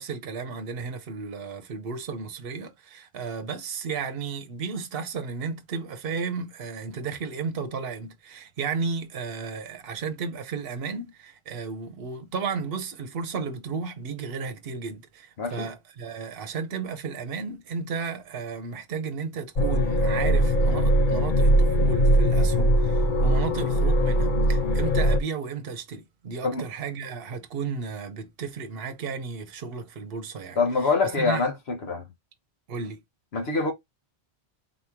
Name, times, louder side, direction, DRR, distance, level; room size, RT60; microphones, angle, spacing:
voice 1, 0.0-31.5 32.7-33.0, right 5 dB, 60° right, 1.0 m, -33 dB
voice 2, 15.4-15.7 26.4-26.6 30.6-32.0 33.3-33.7, left 4 dB, 65° left, 1.3 m, -25 dB
sound 1, 19.6-25.2, equal, 50° left, 0.8 m, -21 dB
4.1 x 3.0 x 3.5 m
omnidirectional pair, 1.1 m